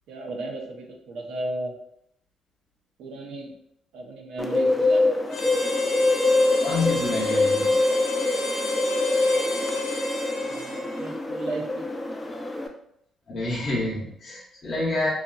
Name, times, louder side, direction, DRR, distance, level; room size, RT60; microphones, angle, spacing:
voice 1, 0.1-1.7 3.0-3.5 3.9-5.5 10.4-11.9, right 2 dB, 85° right, 1 dB, 0.5 m, -35 dB
Bird, 4.4-12.7, left 2 dB, 20° left, 0.4 m, -25 dB
Harmonica, 5.3-11.2, left 2 dB, 75° left, 0.7 m, -29 dB
voice 2, 6.6-7.8 13.3-15.1, left 2 dB, 45° left, -4 dB, 0.8 m, -28 dB
2.7 x 2.4 x 2.3 m, 0.74 s
cardioid pair, 90°, 0 cm